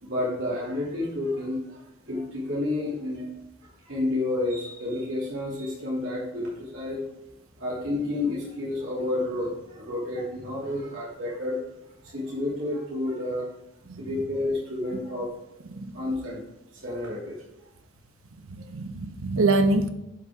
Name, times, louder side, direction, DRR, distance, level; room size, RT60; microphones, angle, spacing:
voice 1, 0.0-3.3 3.8-7.0 7.6-11.6 12.0-13.5 14.0-15.3 15.9-16.4 16.8-17.4, left 2 dB, 70° right, -6 dB, 2.9 m, -30 dB
voice 2, 18.5-19.9, right 2 dB, 85° right, 8 dB, 1.0 m, -25 dB
10.5 x 6.2 x 3.8 m, 0.90 s
head